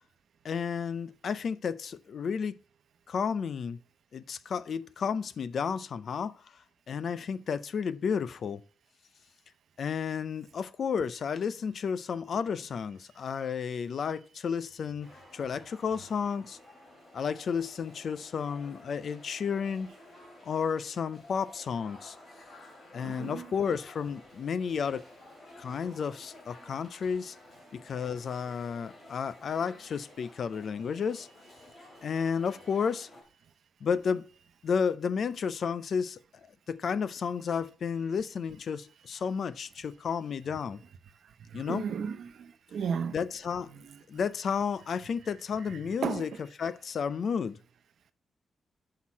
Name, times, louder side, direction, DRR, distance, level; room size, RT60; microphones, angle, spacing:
voice 1, 0.4-2.5 3.1-3.8 4.1-6.3 6.9-8.6 9.8-16.6 17.1-19.9 20.4-22.2 22.9-25.0 25.6-27.3 27.7-31.3 32.0-33.1 33.8-34.3 34.6-36.2 36.7-40.8 41.5-41.9 43.1-43.7 44.1-46.3 46.6-47.6, left 6 dB, 55° left, 0.5 m, -32 dB
sound 1, 15.0-33.2, left 1 dB, 35° left, 2.9 m, -53 dB
voice 2, 23.0-23.5 41.5-43.2 43.6-44.3 45.6-46.4, right 7 dB, 70° right, 0.8 m, -36 dB
6.3 x 5.8 x 7.2 m
wide cardioid pair, 175°, 0 cm